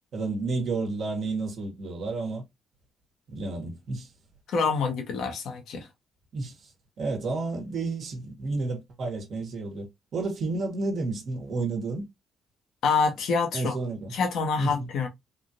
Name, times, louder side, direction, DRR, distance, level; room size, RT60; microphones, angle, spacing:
voice 1, 0.1-2.4 3.3-4.1 6.3-6.7 7.0-12.1 13.5-14.1 14.6-14.9, right 3 dB, 60° right, 1.1 m, -31 dB
voice 2, 4.5-5.9 12.8-13.8 14.1-15.1, left 5 dB, 75° left, 1.1 m, -26 dB
3.6 x 2.4 x 2.6 m
cardioid pair, 90°, 0 cm